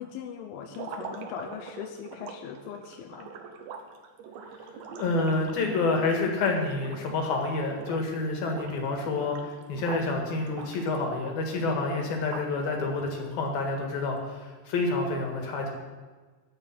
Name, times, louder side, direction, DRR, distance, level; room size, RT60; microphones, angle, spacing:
voice 1, 0.0-3.3, left 8 dB, 80° left, 3 dB, 2.3 m, -40 dB
sound 1, 0.7-7.4 7.7-8.2 8.5-10.1 10.5-12.7, right 5 dB, 75° right, 2.1 m, -43 dB
voice 2, 5.0-15.7, left 3 dB, 60° left, 1 dB, 3.3 m, -28 dB
14.0 x 5.2 x 8.9 m, 1.4 s
omnidirectional pair, 5.1 m